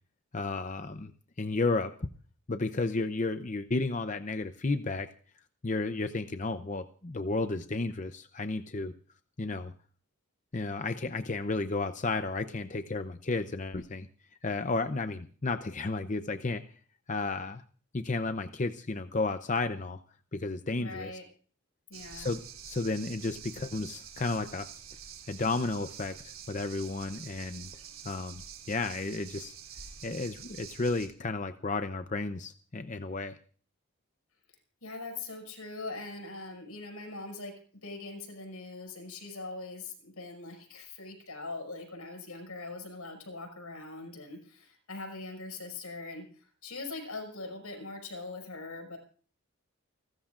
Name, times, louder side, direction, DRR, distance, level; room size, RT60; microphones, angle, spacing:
voice 1, 0.3-1.1 1.4-2.1 2.5-5.1 5.6-8.9 9.4-9.7 10.5-14.1 14.4-16.6 17.1-17.6 17.9-20.0 20.3-21.1 22.1-24.7 25.3-27.7 28.0-28.4 28.7-29.6 30.0-33.4, left 3 dB, 35° left, 9 dB, 0.6 m, -32 dB
voice 2, 20.8-21.2 21.9-22.3 34.8-37.5 37.8-49.0, left 3 dB, 85° left, 4 dB, 5.8 m, -42 dB
sound 1, 21.9-31.1, right 8 dB, 65° right, 3.1 m, -47 dB
29.5 x 13.0 x 2.5 m, 0.42 s
head